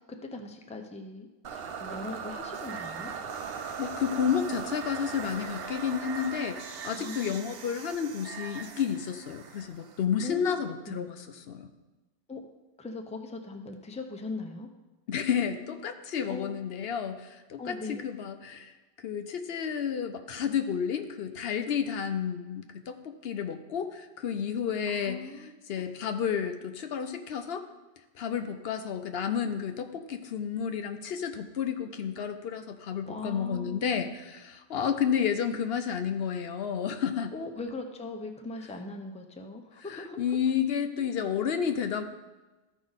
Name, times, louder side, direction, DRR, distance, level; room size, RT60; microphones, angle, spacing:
voice 1, 0.1-3.1 7.0-7.5 10.2-11.1 12.3-12.4 12.8-14.7 16.3-16.5 17.6-18.0 24.9-25.8 33.1-34.1 37.3-40.2, left 2 dB, 10° left, 4 dB, 0.6 m, -40 dB
sound 1, 1.4-10.5, right 6 dB, 70° right, 0.9 m, -39 dB
voice 2, 3.8-11.7 15.1-17.8 18.0-25.2 25.7-27.6 28.1-37.3 39.9-42.0, left 7 dB, 70° left, 8 dB, 0.9 m, -31 dB
13.5 x 5.0 x 4.0 m, 1.1 s
omnidirectional pair, 1.1 m